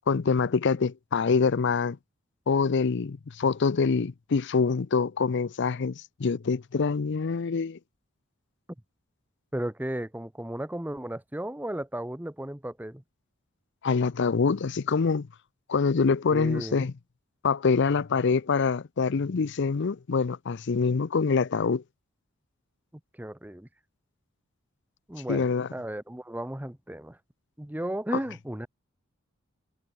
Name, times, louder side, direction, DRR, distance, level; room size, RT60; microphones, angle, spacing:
voice 1, 0.1-2.0 2.5-7.8 13.8-15.3 15.7-16.9 17.4-21.8 25.3-25.7, left 5 dB, 60° left, 0.5 m, -25 dB
voice 2, 9.5-13.0 16.3-16.9 23.1-23.7 25.1-27.2 27.6-28.7, right 1 dB, 10° right, 0.9 m, -34 dB
head